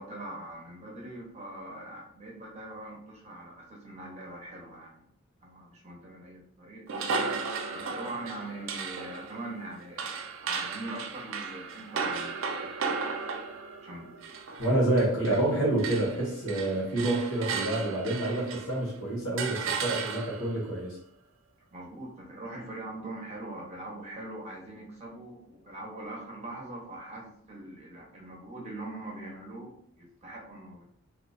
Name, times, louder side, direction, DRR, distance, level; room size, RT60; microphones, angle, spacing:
voice 1, 0.0-5.1 5.4-6.9 7.7-13.1 13.8-14.4 21.7-30.8, right 1 dB, 30° right, -2 dB, 0.8 m, -42 dB
sound 1, 6.9-15.5 15.8-18.8 19.4-20.6, right 5 dB, 65° right, 0.4 m, -35 dB
voice 2, 14.6-21.0, right 1 dB, 70° left, -5 dB, 1.3 m, -28 dB
2.8 x 2.4 x 3.9 m, 0.63 s
head